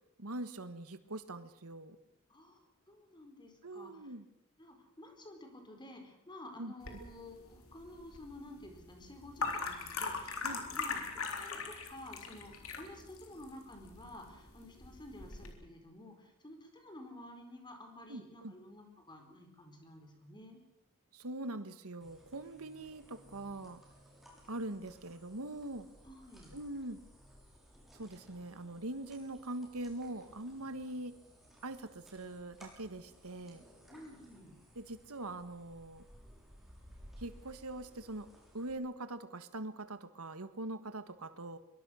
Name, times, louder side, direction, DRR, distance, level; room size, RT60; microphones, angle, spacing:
voice 1, 0.2-2.0 3.6-4.2 6.6-6.7 10.4-10.6 18.1-18.5 21.1-23.8 24.5-25.9 26.5-27.0 27.9-31.2 31.6-33.6 34.7-36.0 37.2-38.3 38.5-41.6, right 2 dB, 85° right, 11 dB, 1.6 m, -43 dB
voice 2, 2.3-4.1 4.6-11.0 11.4-20.6 26.0-26.6 33.9-34.5, left 1 dB, 20° left, 4 dB, 4.4 m, -52 dB
sound 1, 6.8-15.5, left 4 dB, 70° left, 3.8 m, -41 dB
sound 2, 22.0-38.7, equal, ahead, 6.4 m, -59 dB
23.5 x 22.5 x 6.4 m, 0.82 s
head